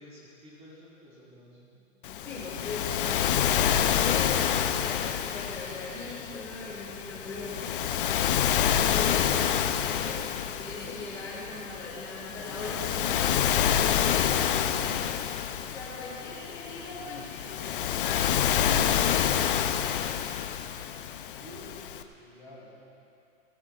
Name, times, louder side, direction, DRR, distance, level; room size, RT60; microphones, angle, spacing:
voice 1, 0.0-1.7 16.9-17.8 21.4-22.7, equal, 15° right, -6 dB, 4.0 m, -51 dB
Waves surf, 2.0-22.0, left 9 dB, 40° left, 0.6 m, -28 dB
voice 2, 2.0-19.5, left 2 dB, 10° left, -9 dB, 1.8 m, -40 dB
25.0 x 17.5 x 2.4 m, 2.8 s
hypercardioid pair, 165°, 40 cm